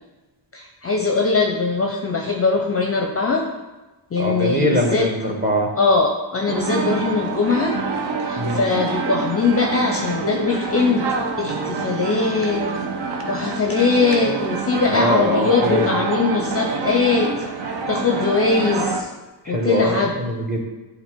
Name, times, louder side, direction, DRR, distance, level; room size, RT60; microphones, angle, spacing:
voice 1, 0.5-3.5 4.1-5.1 5.8-7.7 8.3-11.1 11.4-12.6 13.3-17.3 17.9-19.1 19.5-20.2, left 4 dB, 30° left, 2 dB, 0.6 m, -21 dB
voice 2, 4.2-5.7 8.4-8.7 14.9-16.0 19.4-20.6, equal, 20° right, -1 dB, 1.5 m, -22 dB
sound 1, 6.5-19.0, right 4 dB, 55° right, 0.9 m, -26 dB
7.9 x 2.7 x 4.5 m, 1.1 s
supercardioid pair, 70°, 48 cm